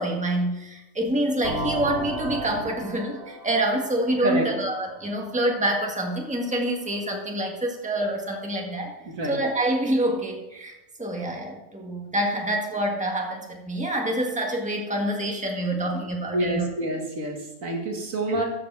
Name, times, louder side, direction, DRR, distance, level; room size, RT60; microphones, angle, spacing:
voice 1, 0.0-8.9 9.3-16.7 18.3-18.4, right 1 dB, 5° right, 0 dB, 1.6 m, -27 dB
sound 1, 1.4-5.2, right 2 dB, 60° right, 3.2 m, -34 dB
voice 2, 16.3-18.4, right 1 dB, 80° right, 1 dB, 2.2 m, -27 dB
13.5 x 6.7 x 4.8 m, 0.96 s
omnidirectional pair, 1.4 m